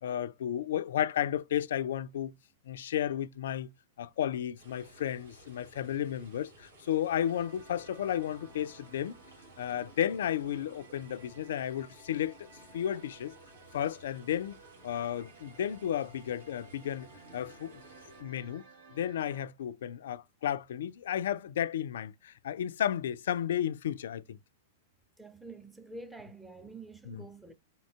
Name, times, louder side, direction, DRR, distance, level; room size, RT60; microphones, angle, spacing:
voice 1, 0.0-2.3 2.7-3.7 4.0-9.2 9.6-12.5 12.7-13.3 13.7-14.6 14.8-17.1 17.3-17.8 18.2-18.6 18.9-24.4 27.1-27.2, left 10 dB, 60° left, 0.3 m, -33 dB
sound 1, 4.6-18.2, right 2 dB, 70° right, 1.5 m, -57 dB
sound 2, 7.2-19.5, right 3 dB, 55° right, 1.1 m, -56 dB
voice 2, 25.2-27.5, right 2 dB, 5° right, 0.5 m, -47 dB
4.0 x 3.7 x 2.3 m
figure-of-eight pair, 100°, 0 cm